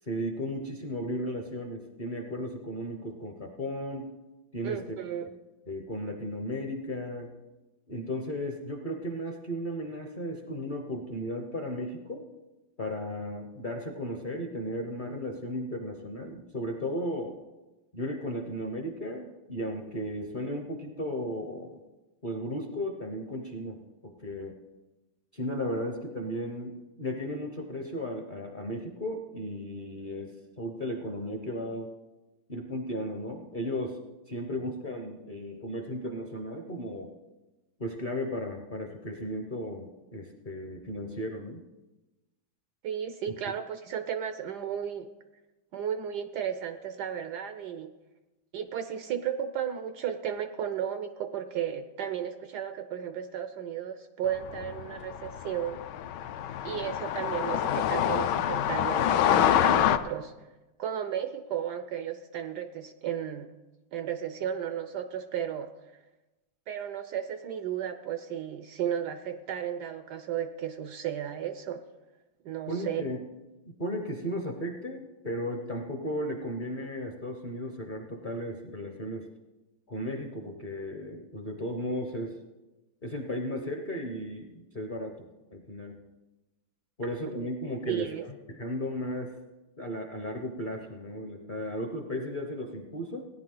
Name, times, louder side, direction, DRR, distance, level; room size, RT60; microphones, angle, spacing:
voice 1, 0.0-4.1 4.5-5.0 5.7-7.3 7.9-12.2 12.8-17.3 17.9-21.8 22.2-24.5 25.3-31.9 32.5-34.0 34.3-37.1 37.8-41.6 72.7-73.2 73.6-79.3 79.9-82.4 83.0-85.3 85.5-86.0 87.0-88.1 88.5-89.3 89.8-93.2, equal, 40° left, 2 dB, 0.7 m, -35 dB
voice 2, 4.6-5.3 42.8-45.1 45.7-47.9 48.5-55.8 56.6-60.3 60.8-63.5 63.9-65.7 66.7-71.8 72.4-73.0 87.9-88.2, right 9 dB, 70° right, 9 dB, 1.0 m, -34 dB
sound 1, 54.4-60.0, left 10 dB, 70° left, 1.1 m, -26 dB
17.0 x 10.0 x 3.8 m, 1.1 s
omnidirectional pair, 2.2 m